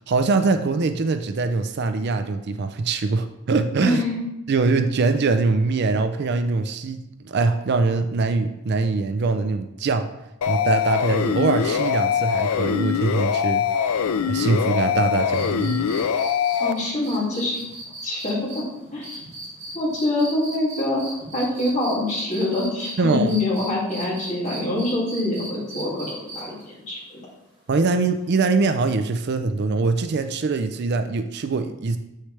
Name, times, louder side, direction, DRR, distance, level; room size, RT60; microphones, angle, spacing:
voice 1, 0.1-4.0 4.5-10.1 10.4-13.7 14.3-15.8 23.0-23.4 27.7-32.0, right 3 dB, 50° right, 8 dB, 0.4 m, -23 dB
voice 2, 3.8-4.2 16.6-17.6 18.0-18.6 18.9-19.2 19.7-21.0 21.3-27.2, left 2 dB, 35° left, -6 dB, 2.5 m, -25 dB
sound 1, 10.4-16.7, left 7 dB, 85° left, 0.4 m, -23 dB
sound 2, 15.3-22.9 23.3-26.6 28.3-28.4, right 2 dB, 35° right, 2.7 m, -38 dB
7.6 x 6.4 x 3.3 m, 0.90 s
head